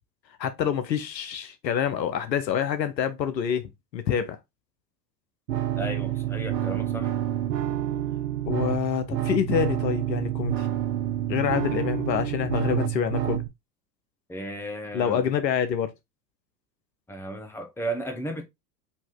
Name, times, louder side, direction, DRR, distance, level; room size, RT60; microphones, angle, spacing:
voice 1, 0.4-4.4 8.5-10.7 11.3-13.4 14.9-15.9, left 8 dB, 80° left, 0.9 m, -26 dB
sound 1, 5.5-13.5, right 12 dB, 75° right, 0.8 m, -28 dB
voice 2, 5.8-7.1 14.3-15.2 17.1-18.5, right 1 dB, 5° left, 0.9 m, -34 dB
4.2 x 3.0 x 3.8 m
hypercardioid pair, 90°, 50 cm